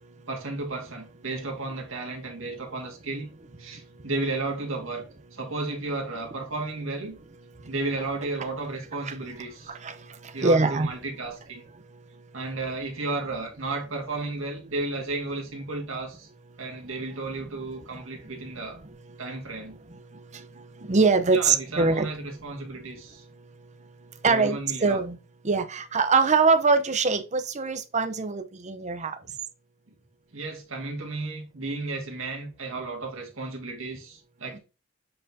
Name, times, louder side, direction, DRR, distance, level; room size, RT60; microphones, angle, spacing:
voice 1, 0.3-3.3 3.6-5.1 5.3-7.2 7.6-9.7 10.3-11.6 12.3-16.3 16.6-18.8 19.2-19.8 21.3-23.3 24.2-25.0 29.2-29.3 30.3-34.6, right 2 dB, 90° right, 1.9 m, -33 dB
voice 2, 10.4-10.9 20.8-22.1 24.2-25.2 25.4-29.1, right 4 dB, 35° right, 0.7 m, -23 dB
7.6 x 4.5 x 2.7 m
head